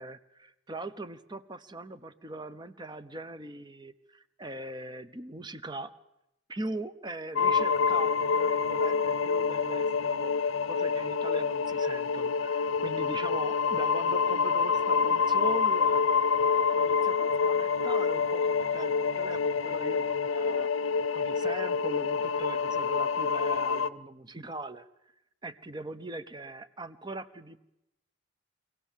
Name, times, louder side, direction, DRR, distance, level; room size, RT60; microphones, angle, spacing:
voice 1, 0.0-5.9 6.5-16.0 16.7-20.7 21.1-24.9 25.4-27.6, right 2 dB, 20° right, 12 dB, 0.9 m, -41 dB
sound 1, 7.4-23.9, left 5 dB, 80° left, 0.7 m, -27 dB
25.0 x 17.5 x 7.4 m, 0.88 s
head